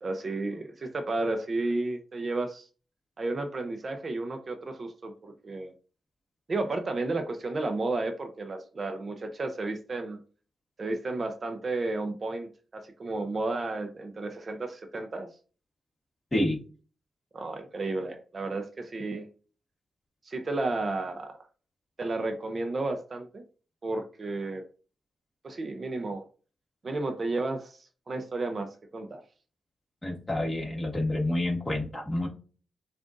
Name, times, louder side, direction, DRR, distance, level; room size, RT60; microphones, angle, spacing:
voice 1, 0.0-2.7 3.2-5.7 6.5-10.2 10.8-15.3 17.3-19.3 20.2-21.4 22.0-23.4 23.8-24.6 25.4-26.3 26.8-27.8 28.1-29.2, right 2 dB, 45° right, 0.6 m, -32 dB
voice 2, 16.3-16.6 30.0-32.3, left 1 dB, 20° left, 1.7 m, -28 dB
7.4 x 2.5 x 2.5 m
cardioid pair, 75°, 0 cm